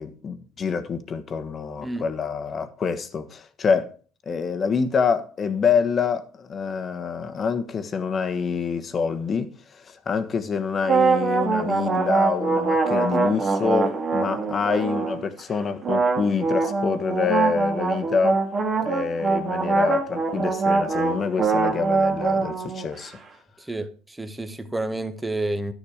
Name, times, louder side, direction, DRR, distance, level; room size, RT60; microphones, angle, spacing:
voice 1, 0.0-3.9 4.3-18.4 18.8-23.2, left 5 dB, 35° left, 1.2 m, -26 dB
sound 1, 10.8-15.2 15.8-23.1, right 4 dB, 35° right, 2.1 m, -23 dB
voice 2, 23.6-25.7, right 2 dB, 10° right, 1.2 m, -30 dB
11.5 x 7.1 x 5.0 m
supercardioid pair, 90°, 0 cm